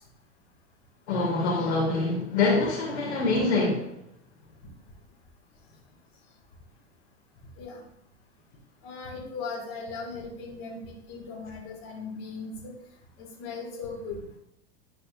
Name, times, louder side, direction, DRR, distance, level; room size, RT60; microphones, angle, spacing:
voice 1, 1.1-3.9, left 3 dB, 75° left, -2 dB, 2.2 m, -25 dB
voice 2, 8.8-12.7 13.2-14.2, left 4 dB, 50° left, -2 dB, 2.0 m, -38 dB
10.5 x 4.1 x 2.5 m, 0.75 s
hypercardioid pair, 100°, 34 cm